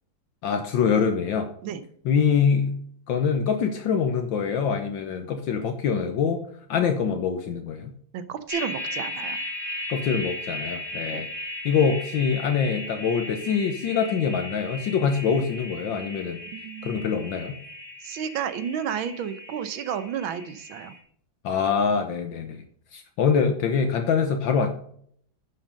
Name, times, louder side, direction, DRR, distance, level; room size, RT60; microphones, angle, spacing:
voice 1, 0.4-1.5 2.0-2.8 3.1-7.9 9.9-11.3 11.6-16.4 16.8-17.6 21.4-22.6 22.9-24.7, left 6 dB, 75° left, 6 dB, 1.6 m, -24 dB
voice 2, 8.1-9.4 11.1-11.2 16.5-17.1 18.0-20.9, right 8 dB, 80° right, 11 dB, 1.7 m, -32 dB
sound 1, 8.5-21.0, left 1 dB, 10° left, 2.4 m, -36 dB
10.0 x 6.5 x 5.2 m, 0.62 s
omnidirectional pair, 2.2 m